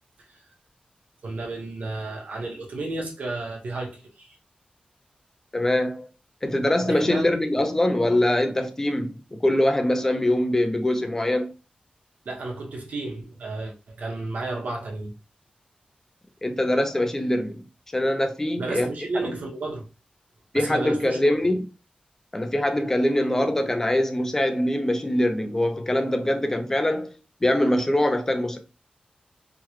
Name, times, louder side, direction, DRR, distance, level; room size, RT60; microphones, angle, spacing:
voice 1, 1.2-4.4 6.8-7.6 12.2-15.2 18.6-19.9 20.5-21.3, right 2 dB, 70° right, 1.0 m, -32 dB
voice 2, 5.5-6.1 6.4-11.5 16.4-17.6 17.9-18.9 19.2-19.3 20.5-21.6 22.3-27.1 27.4-28.6, left 1 dB, 15° left, 0.5 m, -23 dB
3.7 x 2.2 x 3.0 m
wide cardioid pair, 165°, 3 cm